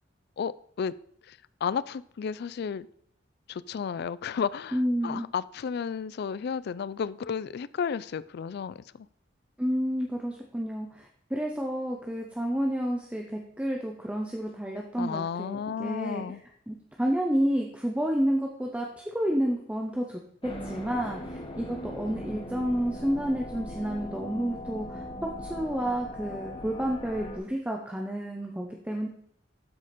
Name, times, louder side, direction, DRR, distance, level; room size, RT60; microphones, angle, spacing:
voice 1, 1.3-2.9 3.5-9.1 15.0-16.4, left 6 dB, 60° left, 18 dB, 0.3 m, -33 dB
voice 2, 4.7-5.3 9.6-16.4 16.7-29.1, equal, 5° right, 0 dB, 0.8 m, -30 dB
sound 1, 20.4-27.4, equal, 30° left, 1.3 m, -39 dB
12.5 x 5.0 x 4.2 m, 0.66 s
head